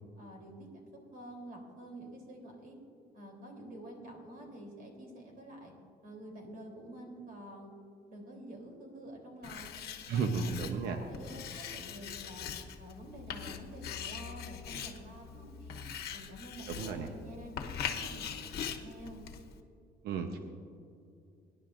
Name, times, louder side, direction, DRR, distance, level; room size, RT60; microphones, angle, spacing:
voice 1, 0.2-0.7 0.9-2.8 3.1-5.7 6.0-7.7 8.1-9.7 10.1-12.5 12.8-15.8 16.1-18.3 18.6-19.2, right 1 dB, 60° right, 1 dB, 3.4 m, -48 dB
Writing, 9.4-19.6, left 8 dB, 80° left, 1.0 m, -42 dB
voice 2, 10.1-11.0 16.7-17.1 20.0-20.4, right 5 dB, 85° right, 5 dB, 0.9 m, -33 dB
24.0 x 10.5 x 2.6 m, 2.5 s
cardioid pair, 120°, 16 cm